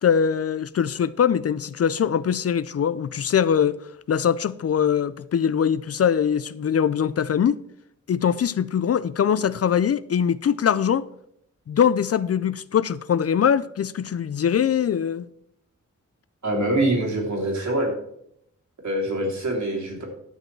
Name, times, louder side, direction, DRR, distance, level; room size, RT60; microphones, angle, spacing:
voice 1, 0.0-3.8 4.1-7.6 8.1-11.0 11.7-15.3, left 8 dB, 55° left, 0.4 m, -22 dB
voice 2, 16.4-17.9 18.8-20.1, right 1 dB, 70° right, 3.0 m, -24 dB
12.0 x 7.7 x 4.6 m
wide cardioid pair, 140°, 30 cm